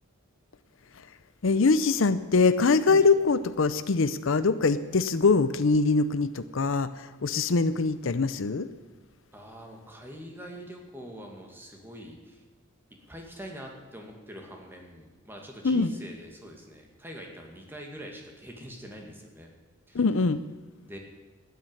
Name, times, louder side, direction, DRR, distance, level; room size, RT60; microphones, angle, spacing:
voice 1, 1.4-8.7 15.6-15.9 19.9-20.4, left 4 dB, 65° left, 13 dB, 0.6 m, -23 dB
voice 2, 9.3-12.4 13.1-19.5 19.9-20.0 20.8-21.0, equal, 10° right, 1 dB, 2.2 m, -44 dB
12.5 x 9.5 x 9.8 m, 1.2 s
head